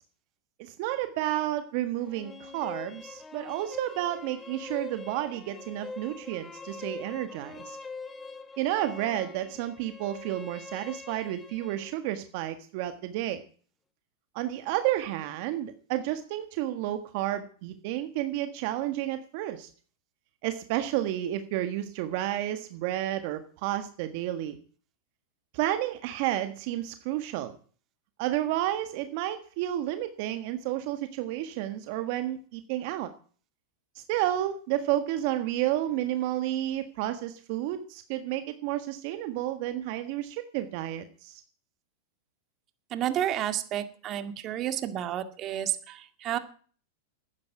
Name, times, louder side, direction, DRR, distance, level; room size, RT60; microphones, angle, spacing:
voice 1, 0.6-7.8 8.6-13.4 14.3-19.7 20.4-24.6 25.5-27.6 28.2-33.1 33.9-41.4, right 13 dB, 55° right, 9 dB, 1.5 m, -31 dB
sound 1, 2.0-11.9, left 3 dB, 15° left, 1.9 m, -43 dB
voice 2, 42.9-46.4, right 11 dB, 35° right, 10 dB, 1.9 m, -31 dB
12.5 x 9.8 x 9.2 m, 0.44 s
hypercardioid pair, 130°, 0 cm